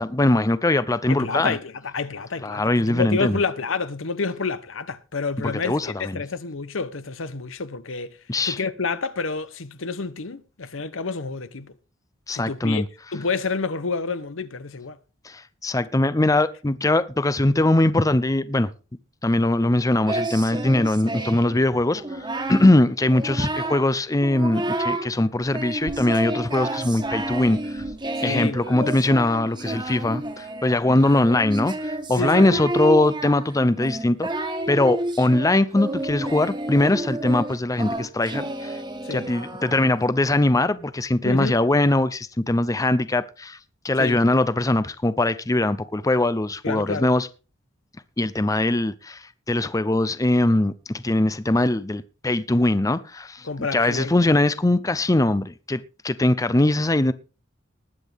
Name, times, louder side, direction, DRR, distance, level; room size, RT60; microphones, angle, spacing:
voice 1, 0.0-1.6 2.4-3.4 5.4-6.2 8.3-8.6 12.3-12.9 15.2-18.7 19.2-27.8 28.2-34.3 34.7-38.8 39.1-43.6 43.8-47.3 48.2-57.1, left 2 dB, 15° left, 0.6 m, -21 dB
voice 2, 1.1-8.2 8.5-11.7 12.3-12.8 13.1-15.0 28.2-29.0 32.2-32.6 39.0-39.3 41.2-41.6 44.0-44.2 46.6-47.1 53.4-54.1, left 4 dB, 85° left, 1.0 m, -29 dB
Singing, 20.1-21.6 21.9-22.7 23.1-23.9 24.2-25.1 25.5-40.0, right 1 dB, 25° right, 1.6 m, -30 dB
20.0 x 8.3 x 3.5 m
head